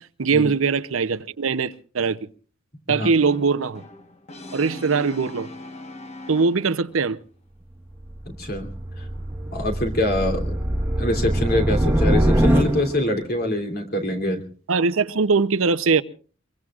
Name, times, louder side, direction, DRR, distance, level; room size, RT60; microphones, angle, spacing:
voice 1, 0.0-2.2 2.9-3.8 4.5-5.5 6.3-7.2 14.7-16.0, right 4 dB, 75° right, 0.7 m, -21 dB
Brass instrument, 3.2-7.0, left 2 dB, 35° left, 1.2 m, -40 dB
sound 1, 7.9-13.2, equal, 10° right, 1.5 m, -23 dB
voice 2, 8.3-8.7 9.0-9.1 9.5-10.6 11.0-14.4, left 1 dB, 50° left, 3.1 m, -24 dB
25.0 x 23.0 x 2.4 m
head